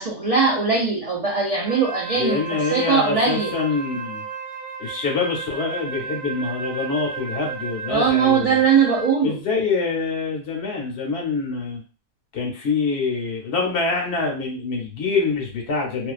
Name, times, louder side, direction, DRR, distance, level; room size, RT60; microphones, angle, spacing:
voice 1, 0.0-3.5 7.9-9.4, right 5 dB, 75° right, -4 dB, 0.3 m, -20 dB
Wind instrument woodwind instrument, 1.6-9.3, right 6 dB, 20° right, 0.5 m, -33 dB
voice 2, 2.1-4.2 4.8-8.6 9.2-11.8 12.3-16.1, left 4 dB, 60° left, 0 dB, 0.9 m, -25 dB
2.4 x 2.3 x 2.3 m, 0.35 s
omnidirectional pair, 1.3 m